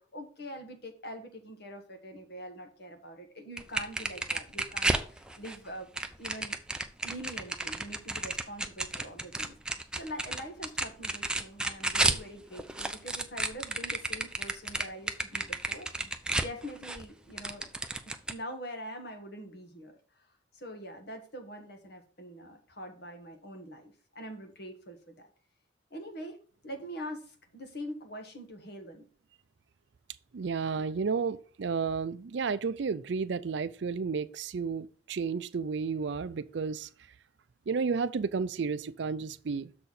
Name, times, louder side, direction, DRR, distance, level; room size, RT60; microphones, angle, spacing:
voice 1, 0.0-5.9 6.2-6.6 7.0-17.7 18.0-20.3 20.5-25.3 25.9-29.1, equal, 55° left, 1.5 m, -44 dB
sound 1, 3.6-5.6 6.0-12.2 12.5-17.1 17.4-18.3, right 2 dB, 5° right, 0.4 m, -32 dB
voice 2, 30.3-36.9 37.7-39.7, right 5 dB, 60° right, 0.4 m, -32 dB
6.7 x 4.2 x 6.4 m
head